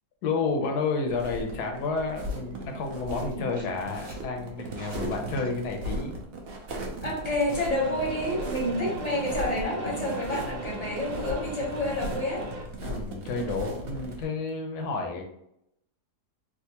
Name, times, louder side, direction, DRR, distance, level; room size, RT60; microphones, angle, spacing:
voice 1, 0.2-6.2 12.8-15.2, left 4 dB, 75° left, 2 dB, 1.2 m, -30 dB
sound 1, 1.1-14.2, right 1 dB, 60° right, 0.6 m, -37 dB
sound 2, 3.3-4.2 4.6-5.5, equal, 5° right, 1.3 m, -51 dB
voice 2, 7.0-12.5, left 1 dB, 30° left, -4 dB, 0.9 m, -29 dB
sound 3, 7.5-12.6, equal, 80° right, 1.2 m, -39 dB
3.5 x 2.5 x 2.8 m, 0.77 s
omnidirectional pair, 1.8 m